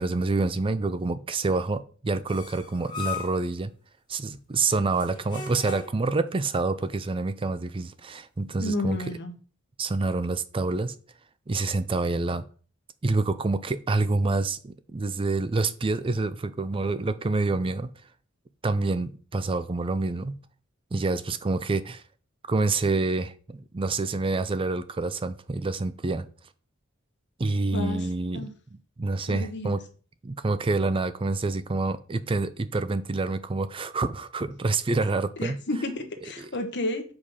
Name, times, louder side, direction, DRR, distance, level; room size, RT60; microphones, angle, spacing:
voice 1, 0.0-3.7 4.1-9.2 9.8-10.9 11.5-12.4 13.0-17.9 18.6-20.4 20.9-22.0 22.5-26.3 27.4-28.5 29.0-29.8 30.2-35.6 36.4-36.5, right 3 dB, 25° right, 0.4 m, -27 dB
sound 1, 2.3-3.5 4.9-6.1, left 6 dB, 20° left, 2.6 m, -37 dB
voice 2, 8.6-9.3 27.7-28.0 28.3-28.5 29.3-29.8 35.4-37.0, left 1 dB, 55° left, 1.4 m, -31 dB
6.5 x 5.2 x 5.6 m
head